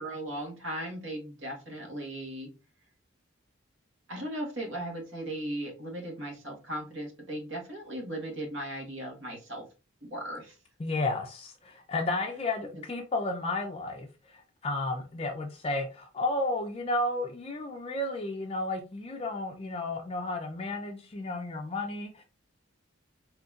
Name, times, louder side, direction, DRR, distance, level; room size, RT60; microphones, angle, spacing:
voice 1, 0.0-2.5 4.1-9.6 10.0-10.6, right 1 dB, 65° right, 1.4 m, -37 dB
voice 2, 10.8-22.2, left 2 dB, 30° left, 0.4 m, -32 dB
3.9 x 2.8 x 2.4 m
head